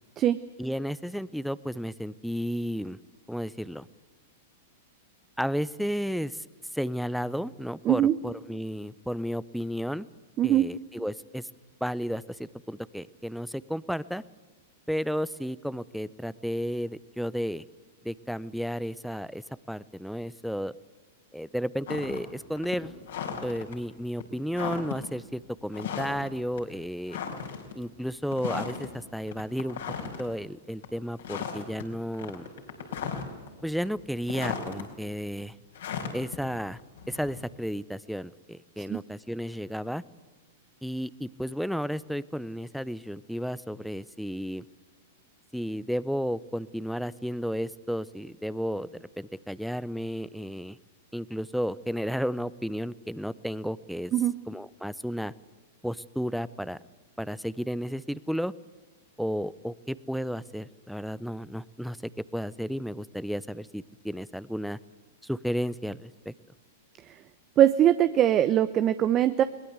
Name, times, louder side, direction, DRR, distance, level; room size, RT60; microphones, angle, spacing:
voice 1, 0.6-3.0 3.3-3.8 5.4-6.4 6.7-10.1 10.4-11.5 11.8-14.2 14.9-17.6 18.0-20.7 21.3-22.9 23.4-27.2 27.7-29.8 30.2-32.5 33.6-35.5 36.1-36.8 37.1-40.0 40.8-44.6 45.5-50.8 51.1-54.1 54.5-55.3 55.8-56.8 57.2-58.5 59.2-64.8 65.2-66.3, equal, ahead, 19 dB, 0.7 m, -33 dB
sound 1, 21.9-22.3 22.6-23.7 24.2-24.3 24.5-25.1 25.7-26.3 26.6-26.7 27.1-27.7 28.3-28.9 29.3-30.3 30.7-30.9 31.2-31.8 32.1-33.5 33.8-34.8 35.7-37.5, left 7 dB, 70° left, 4.8 m, -35 dB
voice 2, 67.6-69.4, right 11 dB, 30° right, 12 dB, 0.8 m, -21 dB
22.0 x 20.5 x 8.2 m, 1.3 s
hypercardioid pair, 105°, 0 cm